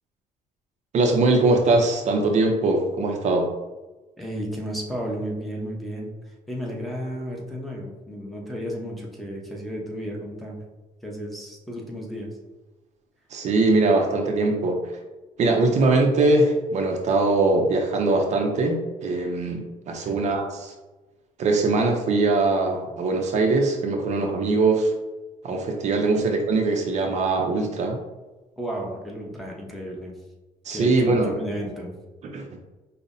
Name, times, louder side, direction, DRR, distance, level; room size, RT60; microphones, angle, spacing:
voice 1, 0.9-3.5 13.3-14.9 15.4-20.7 21.4-24.9 25.4-28.0 30.6-31.4 32.2-32.6, right 3 dB, 55° right, 2 dB, 0.5 m, -21 dB
voice 2, 4.2-10.6 11.0-12.4 20.0-20.2 26.2-26.3 28.6-30.1 30.7-31.9, equal, ahead, -3 dB, 0.7 m, -33 dB
5.3 x 2.0 x 2.6 m, 1.2 s
cardioid pair, 115°, 14 cm